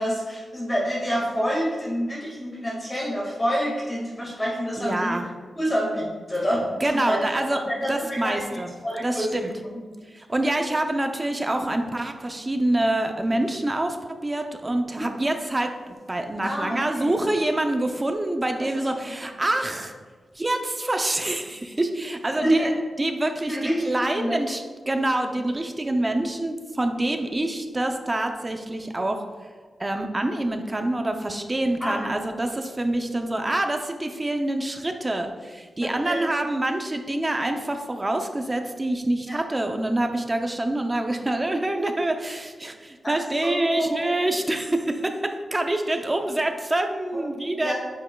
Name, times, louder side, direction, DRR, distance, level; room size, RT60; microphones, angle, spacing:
voice 1, 0.0-5.2 5.5-9.3 9.7-9.8 16.4-17.2 19.0-19.1 22.4-22.7 23.5-23.7 24.1-24.4 31.8-32.1 35.8-36.2 39.3-39.4 43.0-43.2 43.4-44.2 47.1-47.2 47.6-47.7, equal, 20° left, -4 dB, 1.8 m, -27 dB
voice 2, 4.8-5.2 6.8-7.6 7.9-8.7 9.0-9.5 10.1-19.9 20.4-22.7 23.0-29.2 29.8-47.7, right 1 dB, 20° right, 5 dB, 0.5 m, -26 dB
9.3 x 6.0 x 2.3 m, 1.5 s
wide cardioid pair, 155°, 0 cm